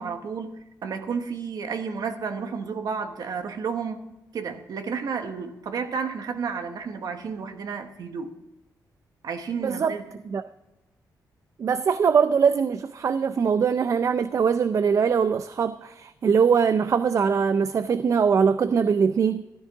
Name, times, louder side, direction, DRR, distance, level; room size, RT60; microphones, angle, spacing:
voice 1, 0.0-4.0 4.3-8.3 9.2-10.0, right 5 dB, 65° right, 1.1 m, -31 dB
voice 2, 9.6-9.9 10.3-10.4 11.6-19.4, right 6 dB, 45° right, 0.4 m, -22 dB
14.0 x 12.5 x 3.6 m
cardioid pair, 110°, 7 cm